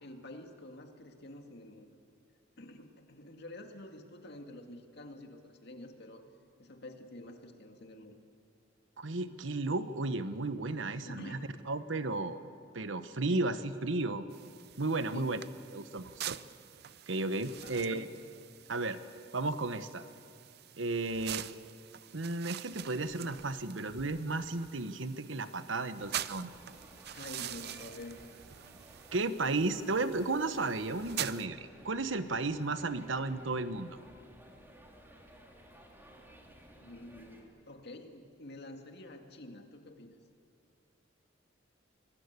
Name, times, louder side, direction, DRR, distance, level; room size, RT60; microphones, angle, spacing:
voice 1, 0.0-2.0 2.6-6.2 6.6-8.2 11.0-11.5 12.2-12.3 13.2-13.4 15.1-15.4 17.6-18.1 27.1-28.2 36.8-40.1, left 1 dB, 60° left, 4 dB, 2.2 m, -48 dB
voice 2, 9.0-11.4 11.7-12.4 12.7-14.3 14.8-15.4 15.7-16.4 17.1-18.1 18.7-19.0 19.3-20.1 20.8-21.5 22.1-26.7 29.1-34.0, right 3 dB, 75° right, 11 dB, 1.1 m, -34 dB
sound 1, 14.3-31.5, right 11 dB, 55° right, 0.5 m, -45 dB
sound 2, 26.2-37.4, equal, 10° right, 2.7 m, -56 dB
25.5 x 20.0 x 8.2 m, 2.4 s
head